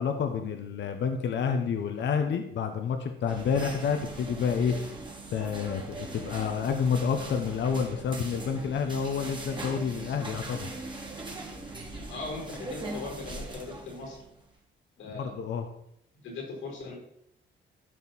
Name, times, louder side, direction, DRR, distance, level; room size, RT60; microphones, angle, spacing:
voice 1, 0.0-4.7 5.3-10.7 15.1-15.7, left 6 dB, 65° left, 6 dB, 1.1 m, -29 dB
sound 1, 3.3-14.4, right 2 dB, 25° right, 2.2 m, -41 dB
voice 2, 11.9-14.2 15.0-15.3 16.1-17.0, left 3 dB, 90° left, 0 dB, 4.3 m, -39 dB
12.5 x 5.5 x 4.2 m, 0.74 s
cardioid pair, 90°, 20 cm